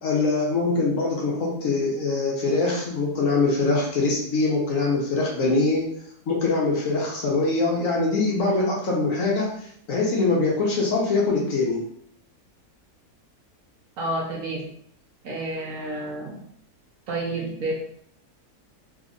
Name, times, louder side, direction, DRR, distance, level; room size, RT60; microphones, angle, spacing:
voice 1, 0.0-5.8 6.3-9.5 9.9-11.8, left 3 dB, 60° left, -3 dB, 1.2 m, -23 dB
voice 2, 14.0-14.7 15.2-16.4 17.1-17.7, right 2 dB, 65° right, -2 dB, 1.2 m, -29 dB
3.6 x 3.0 x 2.6 m, 0.66 s
omnidirectional pair, 1.6 m